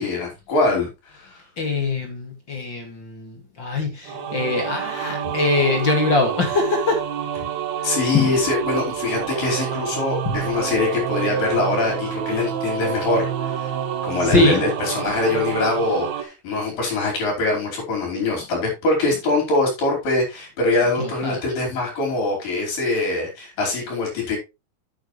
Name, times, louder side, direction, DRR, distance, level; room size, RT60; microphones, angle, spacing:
voice 1, 0.0-1.4 7.8-13.7 14.0-24.4, left 3 dB, 55° left, -1 dB, 6.4 m, -23 dB
voice 2, 1.6-7.0 8.1-8.3 14.3-14.6 21.0-21.4, left 3 dB, 35° left, 2 dB, 2.2 m, -22 dB
sound 1, 4.0-16.2, right 9 dB, 65° right, 1.8 m, -28 dB
9.7 x 8.9 x 3.2 m, 0.25 s
omnidirectional pair, 4.6 m